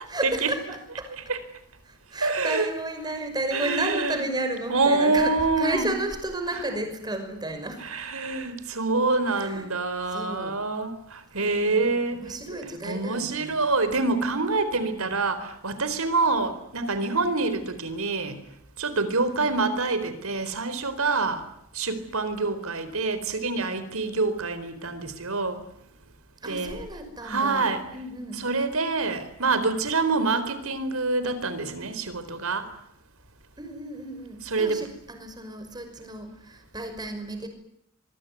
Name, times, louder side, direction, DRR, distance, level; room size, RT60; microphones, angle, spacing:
voice 1, 0.1-1.1 1.8-7.9 9.3-9.7 10.0-10.6 11.4-13.6 14.7-15.1 19.3-19.5 26.4-28.4 33.6-37.5, right 1 dB, 20° right, 6 dB, 5.8 m, -33 dB
voice 2, 2.2-2.7 3.5-4.1 4.7-5.9 7.8-12.5 12.8-18.4 18.8-21.4 21.7-25.6 26.5-26.8 27.2-27.8 28.4-32.7 34.5-34.8, right 3 dB, 85° right, 12 dB, 4.2 m, -26 dB
24.5 x 23.0 x 9.7 m, 0.76 s
head